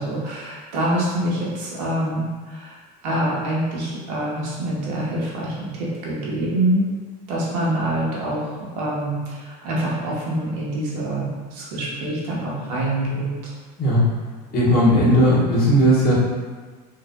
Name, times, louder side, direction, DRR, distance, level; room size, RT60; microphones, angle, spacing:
voice 1, 0.0-2.7 3.0-6.9 7.3-13.3, right 1 dB, 85° right, -5 dB, 1.2 m, -25 dB
voice 2, 14.5-16.1, equal, 45° left, -7 dB, 1.4 m, -16 dB
4.8 x 2.6 x 2.3 m, 1.4 s
supercardioid pair, 120°, 21 cm